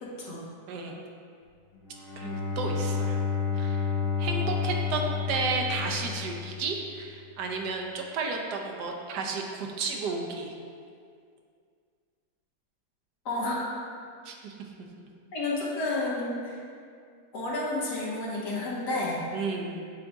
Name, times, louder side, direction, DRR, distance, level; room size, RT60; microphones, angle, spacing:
voice 1, 0.0-0.4 13.3-13.7 15.3-16.6 17.3-19.2, left 2 dB, 90° left, -5 dB, 1.8 m, -31 dB
voice 2, 0.7-1.0 2.2-3.2 3.6-3.9 4.2-10.5 14.3-14.5 15.0-15.1 19.3-19.9, right 4 dB, 85° right, 1 dB, 1.4 m, -32 dB
Bowed string instrument, 1.9-6.9, left 6 dB, 60° left, 0.6 m, -30 dB
8.2 x 3.5 x 3.9 m, 2.2 s
omnidirectional pair, 1.7 m